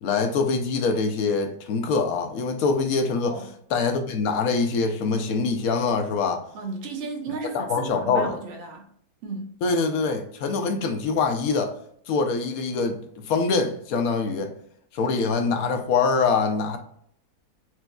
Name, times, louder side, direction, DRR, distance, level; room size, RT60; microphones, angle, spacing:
voice 1, 0.0-3.4 3.7-6.4 7.5-8.3 9.6-11.7 12.1-13.0 13.3-14.5 14.9-16.8, left 4 dB, 70° left, 0.9 m, -24 dB
voice 2, 6.5-8.9 9.2-9.5, right 3 dB, 55° right, 0.8 m, -34 dB
4.5 x 2.5 x 2.2 m
omnidirectional pair, 1.8 m